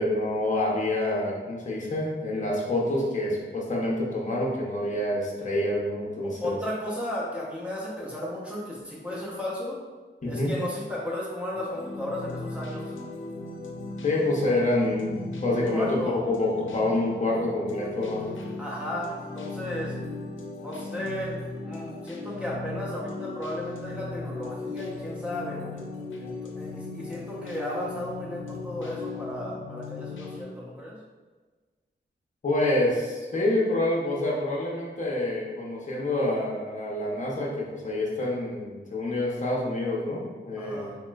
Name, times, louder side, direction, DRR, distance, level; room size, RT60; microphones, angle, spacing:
voice 1, 0.0-6.6 10.2-10.5 14.0-15.1 15.4-18.4 32.4-40.9, left 1 dB, 40° left, -3 dB, 0.6 m, -27 dB
voice 2, 6.2-9.8 10.3-12.9 15.7-16.2 18.6-20.0 20.6-25.8 26.2-31.0 40.6-41.0, left 1 dB, 5° right, -6 dB, 0.7 m, -34 dB
sound 1, 11.5-30.4, left 2 dB, 85° left, 0.4 m, -37 dB
3.0 x 2.9 x 2.3 m, 1.3 s
wide cardioid pair, 115°, 20 cm